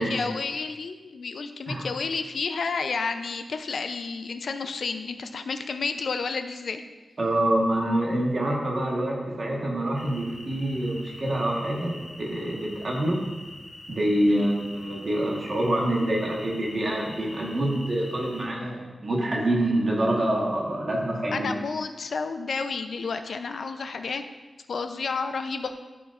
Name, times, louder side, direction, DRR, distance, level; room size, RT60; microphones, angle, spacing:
voice 1, 0.0-6.8 14.3-14.5 21.3-24.2 24.7-25.8, left 4 dB, 65° left, 8 dB, 0.4 m, -31 dB
voice 2, 7.2-13.2 13.9-21.5, right 1 dB, 40° right, -2 dB, 1.3 m, -26 dB
sound 1, 9.9-18.5, left 1 dB, 40° left, 1.6 m, -44 dB
11.5 x 5.0 x 2.5 m, 1.3 s
wide cardioid pair, 145°, 0 cm